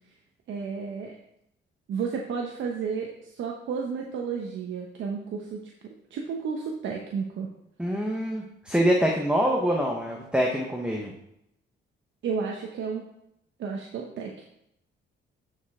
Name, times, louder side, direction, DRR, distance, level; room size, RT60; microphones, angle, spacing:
voice 1, 0.5-1.2 1.9-7.5 12.2-13.0 13.6-14.3, right 5 dB, 70° right, 1 dB, 1.0 m, -32 dB
voice 2, 7.8-11.1, equal, 5° right, 0 dB, 1.1 m, -25 dB
11.0 x 5.2 x 3.7 m, 0.78 s
cardioid pair, 90°, 20 cm